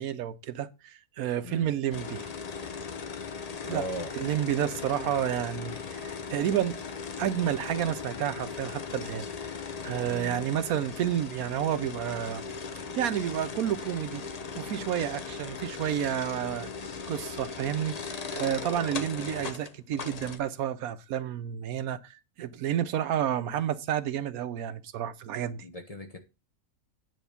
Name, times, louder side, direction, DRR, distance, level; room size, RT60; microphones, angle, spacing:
voice 1, 0.0-2.2 3.6-3.9 4.1-6.8 7.2-9.2 9.8-12.4 13.0-14.2 14.6-16.7 17.1-25.6, right 10 dB, 75° right, 1.1 m, -30 dB
sound 1, 1.9-20.4, left 5 dB, 45° left, 0.5 m, -38 dB
voice 2, 3.7-4.1 10.0-10.4 25.6-26.2, equal, 30° left, 1.0 m, -38 dB
9.4 x 3.5 x 6.8 m
omnidirectional pair, 1.6 m